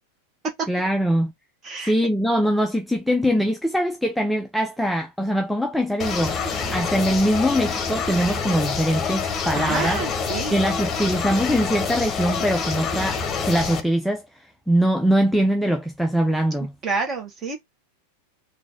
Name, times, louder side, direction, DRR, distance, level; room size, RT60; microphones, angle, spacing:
voice 1, 0.7-1.3 1.8-6.4 6.7-10.0 10.5-14.2 14.7-16.7, equal, ahead, 0.5 m, -22 dB
sound 1, 6.0-13.8, left 5 dB, 25° left, 1.0 m, -27 dB
voice 2, 9.5-10.6 16.8-17.6, right 4 dB, 30° right, 1.6 m, -28 dB
3.9 x 2.7 x 3.6 m
figure-of-eight pair, 90°, 0 cm